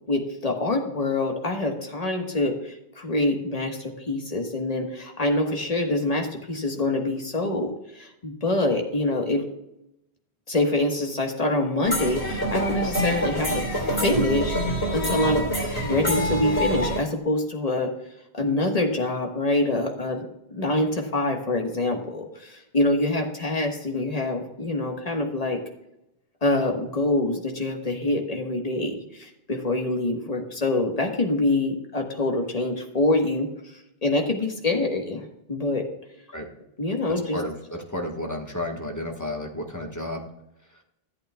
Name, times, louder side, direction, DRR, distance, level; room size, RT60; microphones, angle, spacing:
voice 1, 0.1-9.4 10.5-15.5 15.8-17.9 18.3-25.6 26.4-33.5 34.0-35.8 36.8-37.4, left 2 dB, 35° left, 2 dB, 1.4 m, -25 dB
sounds mashup xiaoyun yuan, 11.8-17.0, equal, 80° left, 3.1 m, -26 dB
voice 2, 37.1-40.3, left 1 dB, 15° left, 1 dB, 1.3 m, -32 dB
14.0 x 8.3 x 2.3 m, 0.84 s
omnidirectional pair, 1.1 m